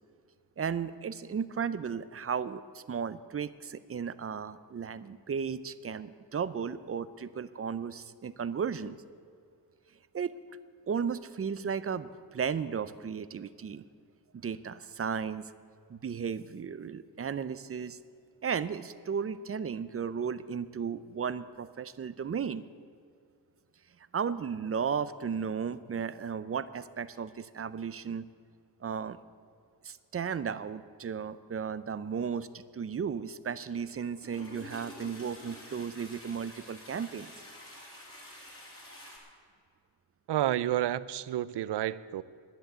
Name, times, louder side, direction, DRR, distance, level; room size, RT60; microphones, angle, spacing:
voice 1, 0.6-9.0 10.1-10.3 10.9-13.8 14.3-15.5 15.9-18.0 18.4-22.6 24.1-28.2 28.8-29.2 29.8-37.3, right 6 dB, 35° right, 15 dB, 0.5 m, -35 dB
Toilet flush, 33.7-33.9 34.2-39.2, left 1 dB, 30° left, 3.5 m, -48 dB
voice 2, 40.3-42.2, right 12 dB, 80° right, 17 dB, 0.6 m, -30 dB
11.0 x 10.5 x 8.0 m, 2.3 s
wide cardioid pair, 115°, 41 cm